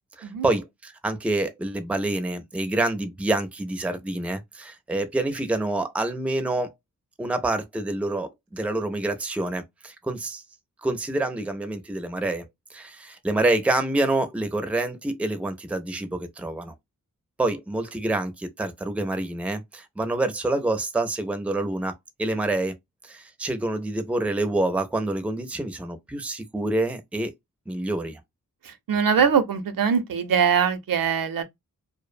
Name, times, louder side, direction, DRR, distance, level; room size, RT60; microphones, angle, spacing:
voice 1, 0.2-6.7 7.2-10.4 10.8-16.7 17.4-22.8 23.0-27.3 27.7-28.2, right 2 dB, 5° right, 0.4 m, -27 dB
voice 2, 28.6-31.4, right 7 dB, 80° right, 0.5 m, -22 dB
2.5 x 2.0 x 2.4 m
wide cardioid pair, 90°, 34 cm